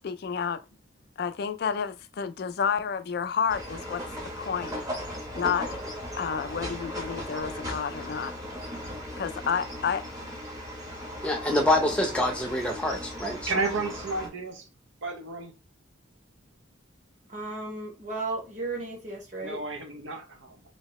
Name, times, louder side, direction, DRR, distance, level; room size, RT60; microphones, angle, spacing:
voice 1, 0.0-0.6 1.2-4.0 4.4-4.7 5.4-5.8 6.2-8.3 9.2-10.0, left 7 dB, 55° left, 0.3 m, -30 dB
sound 1, 3.5-14.3, equal, 20° right, 0.9 m, -37 dB
voice 2, 11.2-13.5, left 1 dB, 5° left, 0.6 m, -26 dB
voice 3, 13.5-14.7 15.0-15.4 19.4-20.6, right 3 dB, 70° right, 0.7 m, -32 dB
voice 4, 17.3-19.6, right 3 dB, 40° right, 1.3 m, -34 dB
2.8 x 2.8 x 3.0 m
head